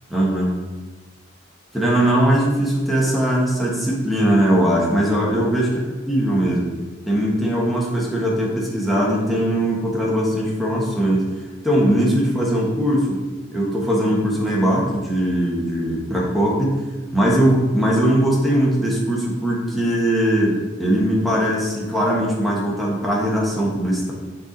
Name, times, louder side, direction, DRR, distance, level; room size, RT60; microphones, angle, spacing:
voice 1, 0.1-0.5 1.7-6.7 7.1-11.2 11.6-13.2 13.5-16.8 17.1-24.1, right 1 dB, ahead, -5 dB, 1.4 m, -20 dB
7.0 x 4.7 x 4.1 m, 1.3 s
head